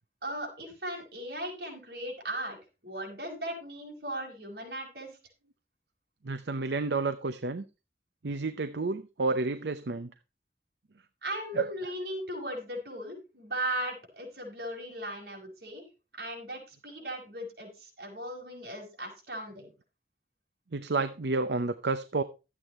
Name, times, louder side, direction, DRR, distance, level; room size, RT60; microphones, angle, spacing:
voice 1, 0.2-2.6 2.8-5.1 11.2-15.9 16.1-19.7, right 1 dB, 60° right, 5.5 m, -37 dB
voice 2, 6.2-7.6 8.2-10.1 11.5-11.9 20.7-22.2, right 3 dB, 75° right, 0.7 m, -30 dB
12.5 x 8.5 x 4.2 m
head